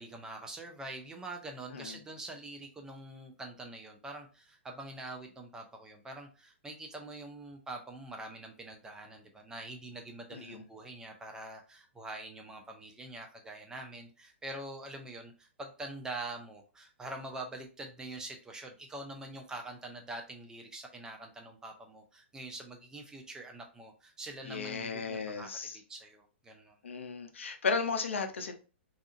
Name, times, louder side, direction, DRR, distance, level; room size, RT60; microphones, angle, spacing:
voice 1, 0.0-26.8, right 2 dB, 10° right, 0.5 m, -45 dB
voice 2, 10.3-10.6 24.4-25.8 26.8-28.5, left 5 dB, 85° left, 0.5 m, -35 dB
2.7 x 2.4 x 2.4 m
hypercardioid pair, 125°, 7 cm